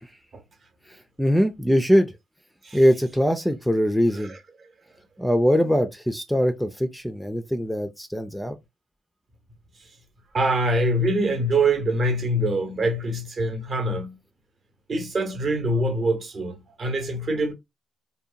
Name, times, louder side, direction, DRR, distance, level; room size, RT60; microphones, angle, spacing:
voice 1, 0.9-2.2 2.7-4.3 5.2-8.6, equal, ahead, 0.4 m, -22 dB
voice 2, 10.3-14.2 14.9-17.5, right 1 dB, 45° right, 0.8 m, -24 dB
2.8 x 2.1 x 2.5 m
cardioid pair, 90°, 0 cm